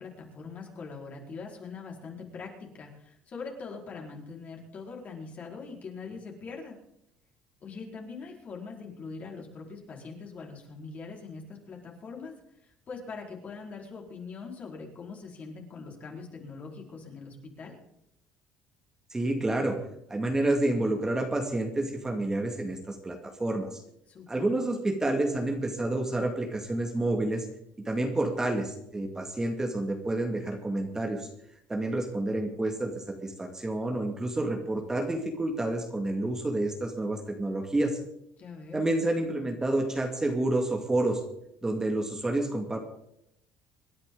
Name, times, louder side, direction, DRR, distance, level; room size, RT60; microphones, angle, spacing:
voice 1, 0.0-6.8 7.6-12.3 12.6-17.8 24.1-24.5 38.4-38.9, left 4 dB, 40° left, -1 dB, 4.8 m, -42 dB
voice 2, 19.1-19.8 20.1-23.7 24.3-27.5 27.9-31.3 31.7-32.9 33.2-38.0 38.7-41.2 41.6-42.8, right 2 dB, 15° right, 2 dB, 2.4 m, -29 dB
27.0 x 10.5 x 4.0 m, 0.79 s
cardioid pair, 115°, 4 cm